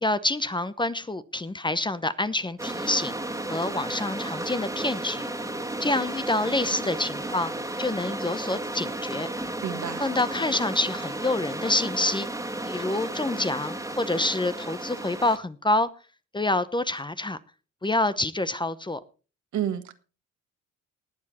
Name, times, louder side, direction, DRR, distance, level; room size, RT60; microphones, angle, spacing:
voice 1, 0.0-3.2 3.5-5.3 5.8-7.5 7.8-9.3 10.0-12.3 12.6-15.9 16.3-17.4 17.8-19.0, left 2 dB, 15° left, 0.8 m, -27 dB
sound 1, 2.6-15.4, right 1 dB, 10° right, 1.9 m, -33 dB
voice 2, 9.6-10.0 19.5-19.9, right 10 dB, 70° right, 1.7 m, -29 dB
19.5 x 7.4 x 4.2 m
cardioid pair, 90°, 30 cm